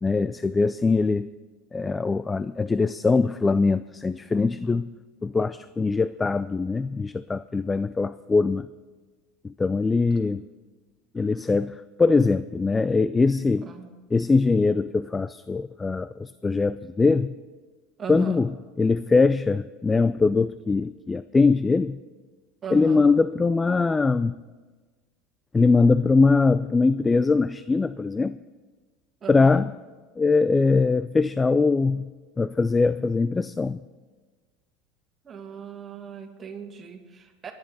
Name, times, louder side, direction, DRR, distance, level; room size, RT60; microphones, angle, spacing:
voice 1, 0.0-1.3 1.7-4.9 5.2-8.7 9.4-10.5 11.1-13.7 14.1-17.3 18.1-18.5 18.8-22.0 22.7-24.3 25.5-28.4 29.3-29.7 30.2-32.1 32.4-33.8, left 4 dB, 15° left, 15 dB, 0.3 m, -22 dB
voice 2, 13.6-13.9 18.0-18.4 22.6-23.1 29.2-29.6 35.2-37.5, right 6 dB, 30° right, 3 dB, 2.1 m, -38 dB
24.0 x 10.5 x 4.1 m, 1.4 s
supercardioid pair, 110°, 0 cm